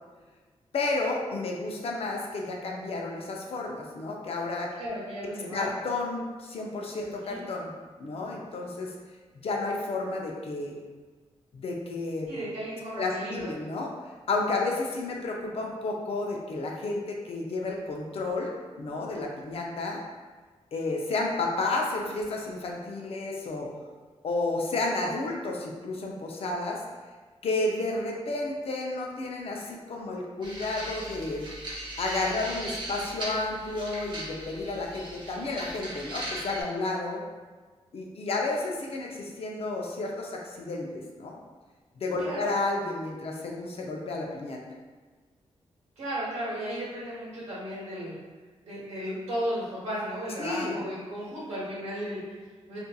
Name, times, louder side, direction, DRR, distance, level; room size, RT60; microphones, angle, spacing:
voice 1, 0.7-4.7 5.5-7.7 8.0-8.9 9.4-10.8 11.5-12.5 13.0-13.9 14.3-18.5 18.8-20.0 20.7-23.7 24.2-26.8 27.4-31.5 32.0-37.2 37.9-41.4 42.0-44.6 50.4-50.8, left 2 dB, 60° left, 0 dB, 0.5 m, -31 dB
voice 2, 4.8-5.6 7.1-7.5 12.3-13.6 42.2-42.5 46.0-48.2 48.6-52.8, equal, 90° right, -9 dB, 0.9 m, -35 dB
sound 1, 30.4-36.6, right 1 dB, 45° right, 0.7 m, -38 dB
2.7 x 2.5 x 2.2 m, 1.4 s
wide cardioid pair, 100°, 11 cm